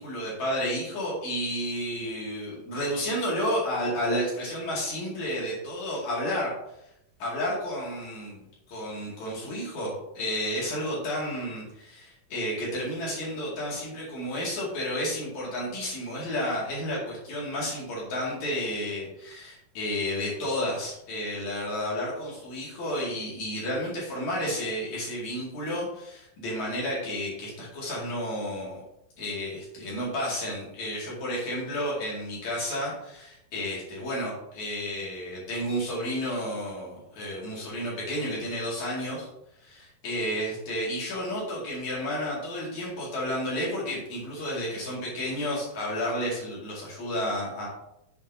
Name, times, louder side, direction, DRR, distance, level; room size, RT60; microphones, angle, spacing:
voice 1, 0.0-6.5 7.2-8.4 8.7-28.8 29.2-39.3 39.6-47.7, equal, 55° left, -5 dB, 3.5 m, -31 dB
8.1 x 7.1 x 2.7 m, 0.82 s
omnidirectional pair, 4.1 m